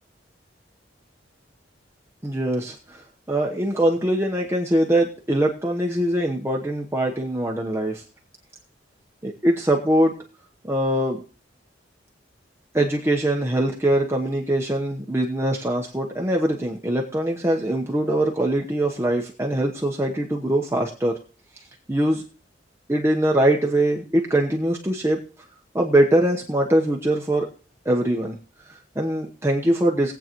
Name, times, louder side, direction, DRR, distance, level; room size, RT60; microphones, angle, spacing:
voice 1, 2.2-8.0 9.2-10.1 10.6-11.2 12.7-21.1 21.9-22.2 22.9-25.2 25.7-27.5 27.8-28.4 28.7-30.2, right 1 dB, 15° right, -1 dB, 1.0 m, -22 dB
21.0 x 8.2 x 3.0 m, 0.37 s
head